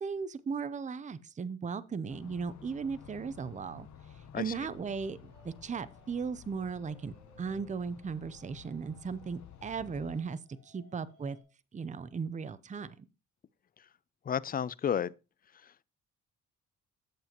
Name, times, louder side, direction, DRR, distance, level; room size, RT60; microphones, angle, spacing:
voice 1, 0.0-3.9 4.3-10.4 10.7-11.4 11.7-13.1, right 5 dB, 25° right, 0.6 m, -37 dB
sound 1, 2.1-10.2, left 8 dB, 70° left, 0.9 m, -53 dB
sound 2, 2.7-11.4, right 3 dB, 70° right, 2.7 m, -65 dB
voice 2, 14.3-15.1, left 8 dB, 30° left, 0.4 m, -31 dB
9.4 x 7.6 x 2.9 m
cardioid pair, 90°, 30 cm